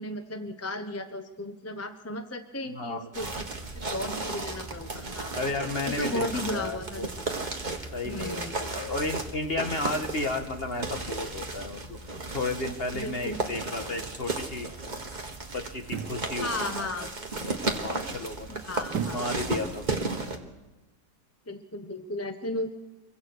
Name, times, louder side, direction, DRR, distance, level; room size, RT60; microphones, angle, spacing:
voice 1, 0.0-3.3 3.9-5.3 5.9-7.0 8.0-8.5 12.9-13.4 13.7-13.9 16.4-17.1 18.6-19.3 21.5-22.7, left 1 dB, 10° left, 7 dB, 0.8 m, -35 dB
voice 2, 2.7-3.3 5.3-7.1 7.9-12.0 12.3-14.7 15.5-16.5 16.8-16.9 17.4-18.6 19.1-19.8, left 2 dB, 35° left, 4 dB, 1.8 m, -33 dB
sound 1, 3.1-20.4, right 3 dB, 30° right, 1.7 m, -34 dB
sound 2, 15.8-16.3 18.9-19.4 19.8-19.9, right 7 dB, 85° right, 1.6 m, -33 dB
26.0 x 23.0 x 4.8 m, 1.1 s
omnidirectional pair, 1.8 m